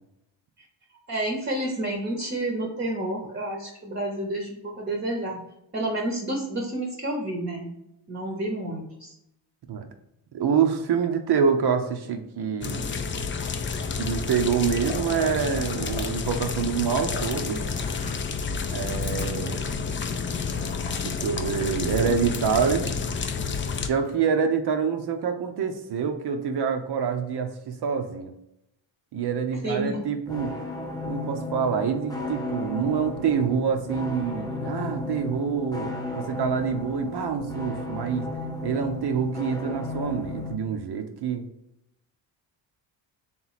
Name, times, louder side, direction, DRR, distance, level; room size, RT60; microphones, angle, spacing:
voice 1, 1.1-5.4 5.7-7.7 8.1-9.2 29.6-30.0, right 1 dB, 20° right, 0 dB, 0.8 m, -30 dB
voice 2, 10.3-12.9 14.0-17.6 18.7-19.6 21.0-22.9 23.8-28.3 29.1-30.5 31.0-38.2 38.6-41.5, right 6 dB, 55° right, 6 dB, 0.6 m, -26 dB
sound 1, 12.6-23.9, left 5 dB, 25° left, 0.3 m, -30 dB
sound 2, 13.4-14.1 14.4-16.1 16.3-18.5 19.0-19.2 19.7-19.8 20.3-23.1 23.8-24.4, left 4 dB, 85° left, 1.1 m, -41 dB
sound 3, 30.3-40.5, left 2 dB, 10° left, 1.0 m, -34 dB
3.5 x 3.0 x 4.0 m, 0.84 s
cardioid pair, 90°, 48 cm